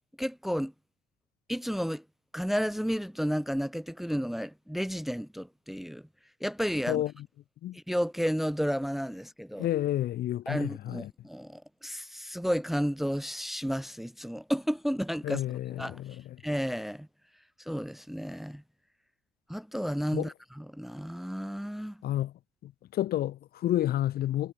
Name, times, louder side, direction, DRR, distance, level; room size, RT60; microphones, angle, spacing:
voice 1, 0.2-0.7 1.5-2.0 2.3-6.0 6.4-7.0 7.7-9.7 10.5-15.4 15.8-16.0 16.4-17.1 17.7-18.6 19.5-22.0, equal, ahead, 1.2 m, -32 dB
voice 2, 9.6-11.1 15.2-16.2 20.1-20.3 22.0-22.3 22.6-24.5, left 13 dB, 65° left, 2.3 m, -30 dB
cardioid pair, 110°, 17 cm